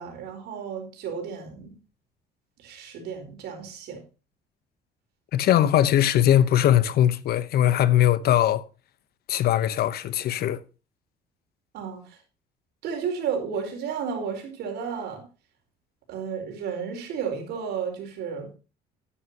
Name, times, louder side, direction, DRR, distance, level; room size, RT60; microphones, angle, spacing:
voice 1, 0.0-1.8 2.6-4.0 11.7-12.2 12.8-15.2 16.1-18.5, right 6 dB, 75° right, 4.6 m, -32 dB
voice 2, 5.3-8.6 9.3-10.6, left 11 dB, 65° left, 1.0 m, -20 dB
12.5 x 10.0 x 2.9 m
cardioid pair, 110°, 17 cm